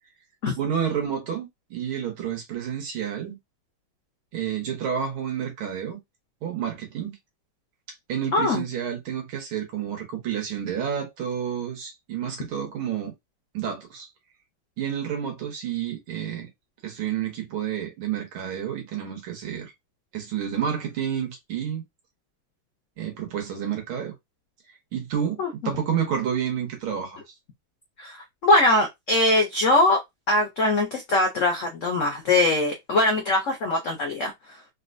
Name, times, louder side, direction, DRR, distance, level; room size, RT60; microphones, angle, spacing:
voice 1, 0.6-3.4 4.3-6.0 6.4-7.2 8.1-13.1 13.5-14.1 14.8-16.5 16.8-19.7 20.1-21.8 23.0-24.1 24.9-27.2, right 8 dB, 85° right, 2.0 m, -30 dB
voice 2, 8.3-8.6 25.4-25.7 28.0-30.0 30.3-34.3, left 2 dB, 85° left, 0.6 m, -22 dB
4.1 x 2.2 x 2.5 m
omnidirectional pair, 2.2 m